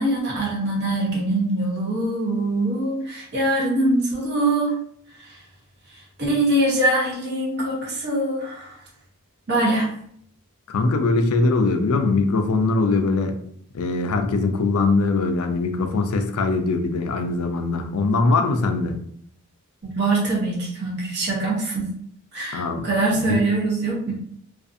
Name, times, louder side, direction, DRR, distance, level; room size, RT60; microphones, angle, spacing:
voice 1, 0.0-4.8 5.2-5.4 5.9-8.8 9.5-9.9 19.8-21.9 22.3-24.1, right 2 dB, 50° right, -3 dB, 0.8 m, -23 dB
voice 2, 10.7-13.3 13.7-18.9 22.5-22.8 23.1-23.4, left 3 dB, 75° left, 6 dB, 0.4 m, -21 dB
2.6 x 2.4 x 2.5 m, 0.67 s
head